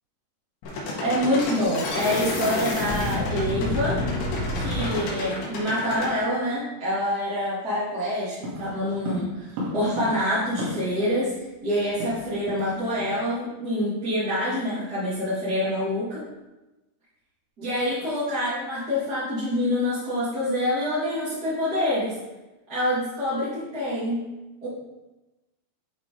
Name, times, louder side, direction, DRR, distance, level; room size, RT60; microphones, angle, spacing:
sound 1, 0.6-6.1, left 1 dB, 75° left, 4.1 m, -28 dB
voice 1, 1.0-4.0 4.6-11.3 11.6-16.2 17.6-22.1 22.7-24.2 24.6-24.7, left 1 dB, 25° right, -13 dB, 2.8 m, -26 dB
sound 2, 8.4-11.1 11.4-11.5 11.7-12.7 13.0-13.2 13.6-13.8, equal, 75° right, 3.9 m, -34 dB
10.0 x 7.0 x 3.4 m, 1.1 s
omnidirectional pair, 5.1 m